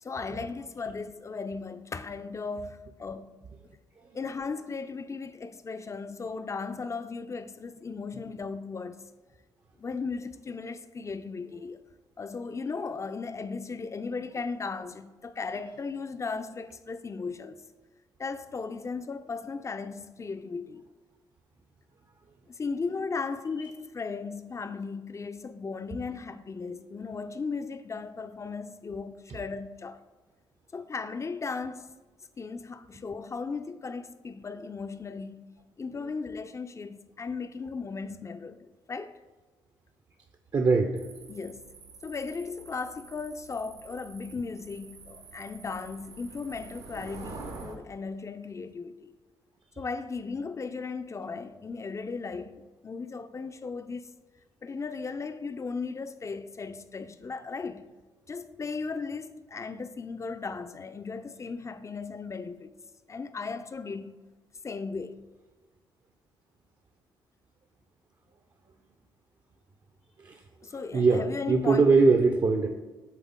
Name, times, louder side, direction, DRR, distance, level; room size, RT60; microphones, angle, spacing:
voice 1, 0.0-3.3 4.1-9.1 9.8-11.8 12.2-17.6 18.2-20.8 22.5-30.0 30.7-31.9 32.4-35.5 35.8-39.2 41.3-41.7 42.0-49.1 49.8-54.1 54.6-57.9 58.3-62.7 63.1-64.1 64.6-65.2 70.6-71.9, left 4 dB, 25° left, 0.5 m, -36 dB
voice 2, 40.5-41.0 70.2-70.4 70.9-72.7, right 4 dB, 35° right, 0.6 m, -22 dB
sound 1, 41.0-47.8, right 4 dB, 65° right, 0.9 m, -47 dB
7.5 x 3.5 x 3.6 m
hypercardioid pair, 45°, 11 cm